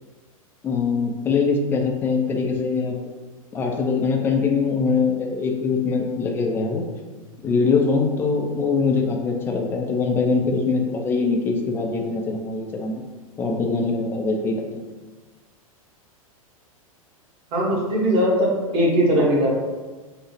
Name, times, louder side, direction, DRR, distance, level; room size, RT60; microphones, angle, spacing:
voice 1, 0.6-3.1 3.5-6.8 7.4-12.9 13.4-14.6, left 4 dB, 10° left, 2 dB, 0.3 m, -22 dB
voice 2, 17.5-19.5, equal, 30° right, -2 dB, 0.8 m, -20 dB
3.7 x 2.0 x 3.1 m, 1.3 s
figure-of-eight pair, 95°, 18 cm